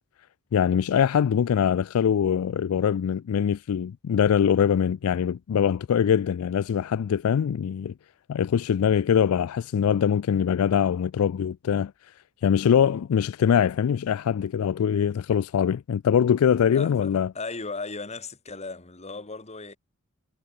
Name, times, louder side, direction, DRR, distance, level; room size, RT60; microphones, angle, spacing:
voice 1, 0.5-7.9 8.3-11.9 12.4-17.3, left 8 dB, 90° left, 0.4 m, -23 dB
voice 2, 16.7-19.8, left 3 dB, 30° left, 2.2 m, -37 dB
head